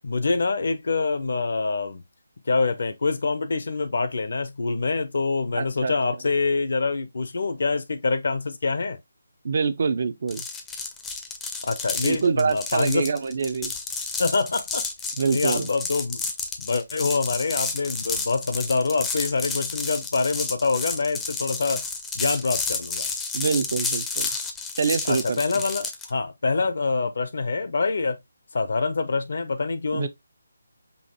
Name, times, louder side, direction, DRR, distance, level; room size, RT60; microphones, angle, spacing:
voice 1, 0.0-2.0 2.5-9.0 11.6-13.1 14.2-14.8 15.3-16.2 16.6-21.8 22.1-23.1 25.1-28.2 28.5-30.1, left 4 dB, 60° left, 0.7 m, -25 dB
voice 2, 5.5-6.0 9.4-10.4 12.0-13.7 15.2-15.7 23.3-24.3 24.8-25.4 29.9-30.1, right 5 dB, 50° right, 0.5 m, -25 dB
sound 1, 10.3-26.1, left 4 dB, 10° left, 0.5 m, -31 dB
5.5 x 2.6 x 2.8 m
figure-of-eight pair, 155°, 0 cm